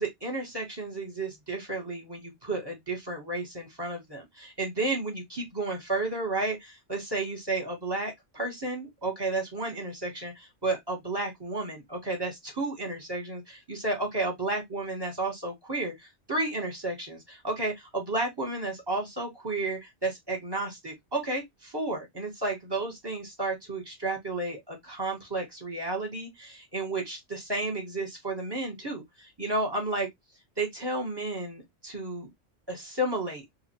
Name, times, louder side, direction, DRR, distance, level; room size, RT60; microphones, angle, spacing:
voice 1, 0.0-30.1 30.6-32.3 32.7-33.4, right 2 dB, 20° right, 1.2 m, -32 dB
2.7 x 2.5 x 2.9 m
omnidirectional pair, 1.2 m